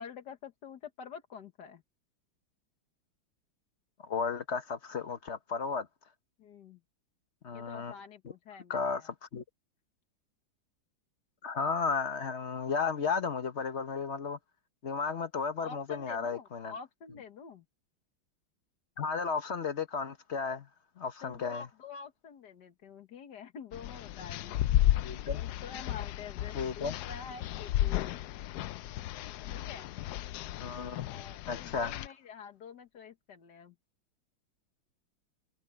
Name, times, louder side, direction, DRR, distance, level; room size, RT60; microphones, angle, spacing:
voice 1, 0.0-1.8 6.4-6.8 7.5-9.1 15.6-17.7 21.2-24.7 25.3-28.1 29.5-29.9 31.1-33.8, left 6 dB, 60° left, 1.8 m, -47 dB
voice 2, 4.0-5.9 7.4-7.9 8.7-9.4 11.4-14.4 14.8-16.7 19.0-20.7 21.0-21.6 25.0-25.4 26.5-26.9 30.6-31.0 31.5-31.9, left 5 dB, 40° left, 1.1 m, -34 dB
sound 1, 23.7-32.1, left 13 dB, 75° left, 0.9 m, -33 dB
omnidirectional pair, 2.2 m